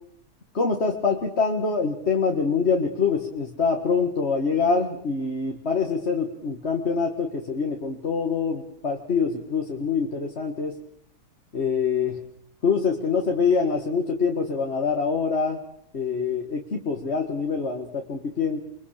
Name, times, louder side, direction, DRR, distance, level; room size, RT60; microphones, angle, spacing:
voice 1, 0.5-10.8 11.5-12.2 12.6-15.6 15.9-18.6, left 5 dB, 45° left, 2 dB, 2.1 m, -25 dB
30.0 x 23.0 x 6.7 m, 0.68 s
omnidirectional pair, 1.6 m